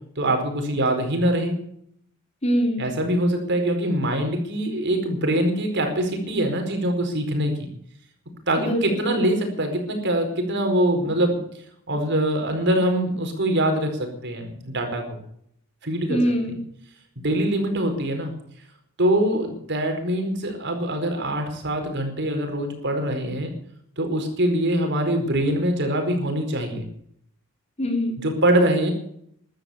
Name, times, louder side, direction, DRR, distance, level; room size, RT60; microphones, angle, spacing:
voice 1, 0.2-1.6 2.8-7.7 8.5-11.4 11.9-15.2 15.8-16.2 17.2-18.3 19.0-23.5 24.0-26.9 28.2-28.9, right 1 dB, 55° right, 5 dB, 4.7 m, -23 dB
voice 2, 2.4-2.9 8.6-9.2 16.1-16.6 27.8-28.2, equal, 30° left, 3 dB, 4.2 m, -24 dB
14.5 x 12.5 x 7.1 m, 0.69 s
head